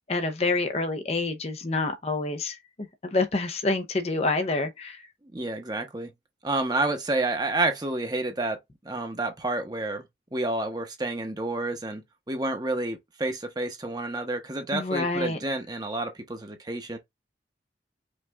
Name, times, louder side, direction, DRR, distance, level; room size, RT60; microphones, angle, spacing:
voice 1, 0.1-5.0 14.7-15.4, left 3 dB, 35° left, 0.7 m, -27 dB
voice 2, 5.3-6.1 6.4-8.6 8.8-10.0 10.3-17.0, right 2 dB, 20° right, 0.9 m, -29 dB
5.2 x 2.5 x 3.4 m
head